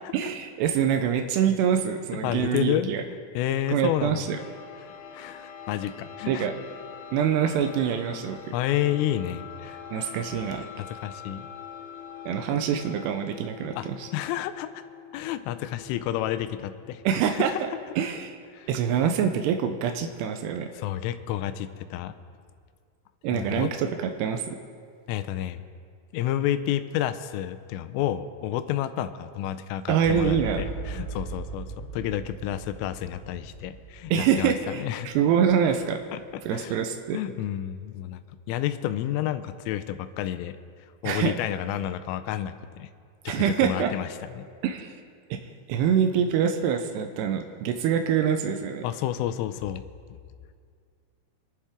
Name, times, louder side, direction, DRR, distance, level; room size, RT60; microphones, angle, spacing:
voice 1, 0.1-3.0 3.7-4.4 6.3-6.5 7.1-8.4 9.9-10.6 12.3-14.1 17.0-17.5 18.0-18.4 18.7-20.7 23.2-24.6 29.9-30.7 34.1-36.0 36.5-37.2 41.0-41.3 43.3-43.9 44.6-45.0 45.3-48.8, right 8 dB, 85° right, 5 dB, 2.4 m, -25 dB
voice 2, 2.2-4.4 4.8-6.5 8.5-9.8 10.1-10.2 10.8-11.5 13.7-14.8 15.1-17.0 17.3-17.6 18.5-18.7 20.7-22.1 23.3-23.7 25.1-25.6 26.1-35.1 36.1-36.2 36.5-36.8 37.1-40.6 41.0-42.9 43.2-44.5 48.8-49.8, left 12 dB, 90° left, 11 dB, 3.3 m, -30 dB
sound 1, 4.0-19.6, left 8 dB, 70° left, 3.2 m, -45 dB
sound 2, 30.0-36.7, right 5 dB, 65° right, 4.1 m, -39 dB
26.0 x 11.5 x 3.7 m, 2.1 s
omnidirectional pair, 5.7 m